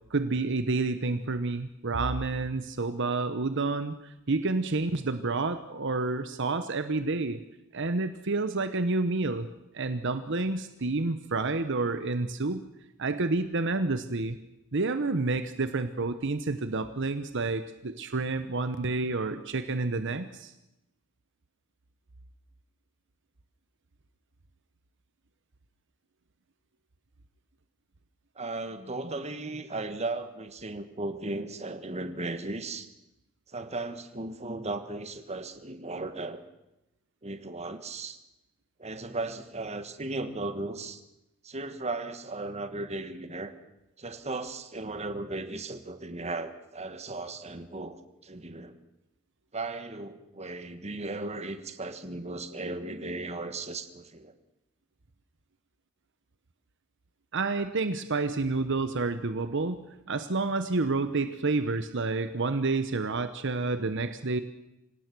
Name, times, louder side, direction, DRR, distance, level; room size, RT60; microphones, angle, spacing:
voice 1, 0.1-7.4 7.7-9.5 9.7-12.6 13.0-14.4 14.7-20.5 57.3-59.8 60.1-64.4, right 3 dB, 60° right, 10 dB, 1.0 m, -29 dB
voice 2, 28.3-32.9 33.5-36.4 37.2-38.2 38.8-41.0 41.4-43.5 44.0-48.7 49.5-54.3, right 2 dB, 30° right, 9 dB, 1.6 m, -36 dB
25.5 x 17.5 x 6.2 m, 0.90 s
head